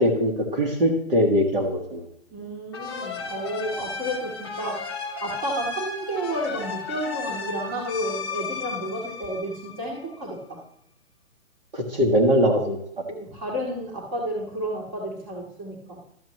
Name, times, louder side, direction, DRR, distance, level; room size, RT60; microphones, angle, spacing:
voice 1, 0.0-2.0 11.7-12.8, equal, 45° right, 0 dB, 1.6 m, -21 dB
voice 2, 2.3-4.8 5.2-10.6 13.1-16.0, right 1 dB, 20° right, -6 dB, 1.6 m, -31 dB
sound 1, 2.7-10.2, left 5 dB, 20° left, 0.8 m, -34 dB
12.5 x 7.2 x 3.1 m, 0.72 s
hypercardioid pair, 170°, 40 cm